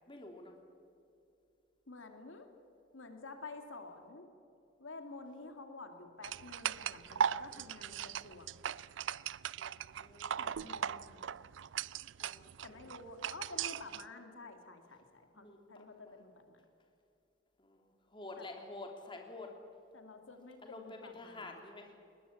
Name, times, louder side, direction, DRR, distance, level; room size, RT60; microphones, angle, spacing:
voice 1, 0.1-0.5 7.5-8.2 9.6-10.8 12.2-12.9 15.3-16.2 17.6-19.5 20.6-21.9, left 2 dB, 25° left, 3 dB, 2.8 m, -50 dB
voice 2, 1.9-2.5 2.9-4.3 4.8-8.6 10.4-11.2 12.6-16.6 18.4-18.5 19.9-21.5, left 3 dB, 80° left, 6 dB, 2.4 m, -50 dB
sound 1, 6.2-14.0, right 8 dB, 70° right, 0.4 m, -38 dB
20.5 x 20.5 x 8.5 m, 2.7 s
head